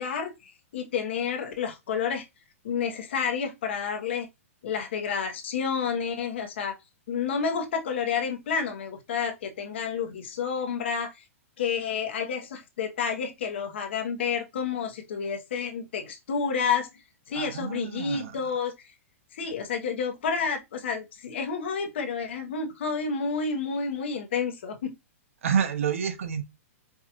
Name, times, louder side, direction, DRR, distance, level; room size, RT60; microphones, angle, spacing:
voice 1, 0.0-2.3 2.6-4.3 4.6-6.8 7.1-11.2 11.6-16.9 17.3-18.7 19.3-24.9, left 6 dB, 50° left, 1.0 m, -30 dB
voice 2, 17.3-18.4 25.4-26.4, right 7 dB, 65° right, 0.7 m, -28 dB
4.6 x 2.4 x 2.9 m
hypercardioid pair, 180°, 8 cm